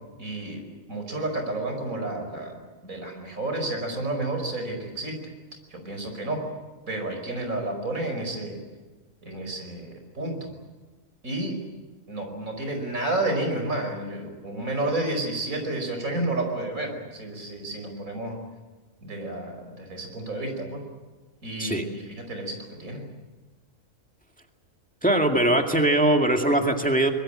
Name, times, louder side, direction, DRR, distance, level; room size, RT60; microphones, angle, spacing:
voice 1, 0.2-0.6 0.9-5.2 5.7-6.4 6.9-8.6 9.2-10.5 11.2-11.6 12.1-18.4 19.0-20.8 21.4-23.0, right 2 dB, 85° right, 4 dB, 5.6 m, -31 dB
voice 2, 25.0-27.1, right 1 dB, 5° left, 3 dB, 2.0 m, -21 dB
24.5 x 22.0 x 8.9 m, 1.2 s
omnidirectional pair, 1.4 m